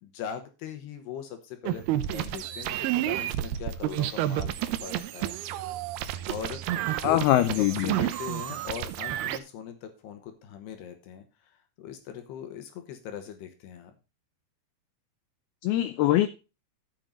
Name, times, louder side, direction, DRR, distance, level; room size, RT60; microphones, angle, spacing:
voice 1, 0.0-4.5 4.8-5.3 6.3-11.2 11.5-13.9, left 8 dB, 70° left, 3.1 m, -40 dB
sound 1, 1.7-9.4, right 13 dB, 75° right, 2.4 m, -30 dB
voice 2, 7.0-8.0 15.6-16.3, left 14 dB, 90° left, 2.1 m, -23 dB
12.0 x 7.4 x 3.8 m
omnidirectional pair, 5.1 m